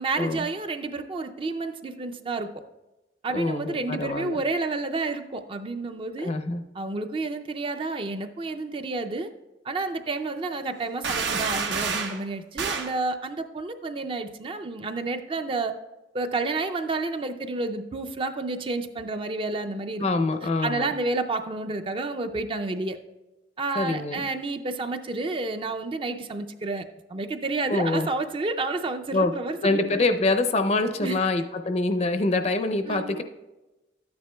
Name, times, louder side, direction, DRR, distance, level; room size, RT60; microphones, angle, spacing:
voice 1, 0.0-2.5 3.2-6.3 6.7-9.3 9.6-15.7 16.1-20.1 20.6-23.0 23.6-30.0 31.0-31.3 32.8-33.2, right 3 dB, 30° right, 7 dB, 0.4 m, -30 dB
voice 2, 3.3-4.4 6.2-6.6 20.0-20.9 23.8-24.3 27.7-28.1 29.1-29.3 29.6-33.2, left 2 dB, 35° left, 8 dB, 0.5 m, -25 dB
sound 1, 11.0-12.2 12.6-12.9, right 5 dB, 90° right, 0.8 m, -28 dB
12.5 x 9.5 x 2.2 m, 1.1 s
head